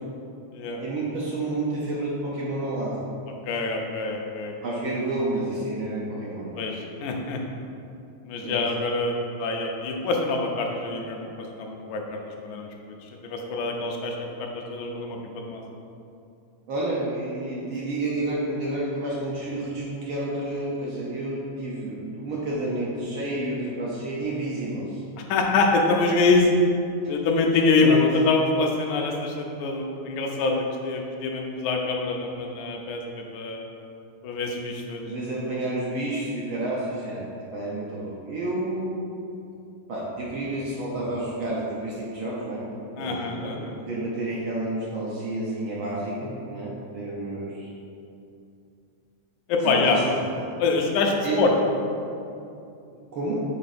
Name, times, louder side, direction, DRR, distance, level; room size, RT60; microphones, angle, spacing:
voice 1, 0.8-3.0 4.6-6.5 8.4-8.6 16.7-25.0 27.8-28.1 35.0-37.2 37.5-39.0 39.9-42.7 43.0-47.7 49.6-50.5 51.2-51.4 53.0-53.4, right 2 dB, 75° right, -5 dB, 1.1 m, -30 dB
voice 2, 3.5-4.5 6.6-6.7 7.0-7.4 8.3-13.0 13.2-15.6 25.3-26.5 27.1-33.7 34.2-35.0 43.0-43.6 49.5-50.0 50.6-51.5, left 3 dB, 90° left, 1 dB, 2.2 m, -25 dB
7.6 x 3.7 x 4.1 m, 2.6 s
omnidirectional pair, 3.3 m